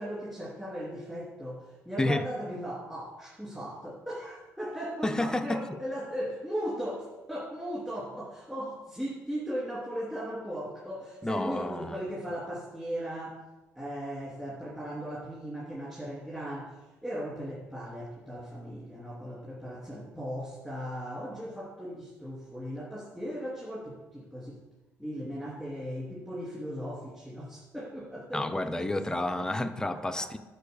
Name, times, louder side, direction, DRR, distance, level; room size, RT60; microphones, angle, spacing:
voice 1, 0.0-13.4 13.8-24.6 25.0-28.4 28.7-29.2 29.9-30.2, equal, 5° right, -7 dB, 2.8 m, -37 dB
voice 2, 5.0-5.8 11.2-12.0 28.3-30.4, left 1 dB, 10° left, 9 dB, 0.6 m, -30 dB
11.5 x 4.7 x 6.9 m, 1.1 s
cardioid pair, 115°, 6 cm